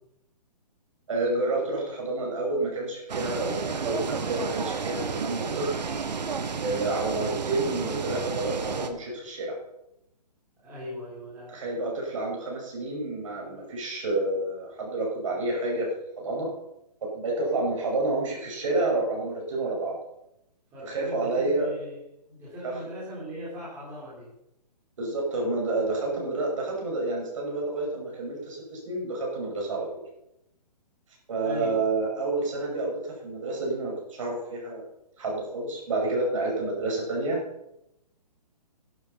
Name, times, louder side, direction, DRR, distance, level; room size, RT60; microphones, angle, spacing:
voice 1, 1.1-6.1 6.6-9.6 11.5-15.9 16.2-16.5 17.0-20.0 20.8-21.7 22.6-22.7 25.0-29.9 31.3-34.8 35.2-37.4, right 2 dB, 50° right, -1 dB, 6.4 m, -29 dB
sound 1, 3.1-8.9, right 5 dB, 85° right, 1.8 m, -31 dB
voice 2, 10.6-11.5 20.7-22.0 22.3-24.3 31.4-31.8, equal, 10° right, -9 dB, 3.8 m, -39 dB
13.0 x 11.5 x 5.7 m, 0.84 s
hypercardioid pair, 175°, 21 cm